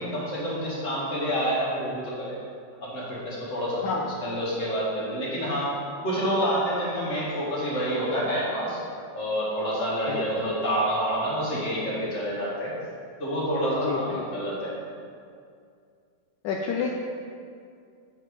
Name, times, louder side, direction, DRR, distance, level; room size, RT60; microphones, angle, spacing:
voice 1, 0.0-2.4 2.8-3.8 4.2-5.8 6.0-8.8 9.1-12.7 13.2-14.8, equal, 45° left, -8 dB, 2.4 m, -28 dB
voice 2, 13.7-14.5 16.4-16.9, left 5 dB, 80° left, 1 dB, 1.2 m, -30 dB
8.6 x 4.6 x 5.0 m, 2.3 s
omnidirectional pair, 1.9 m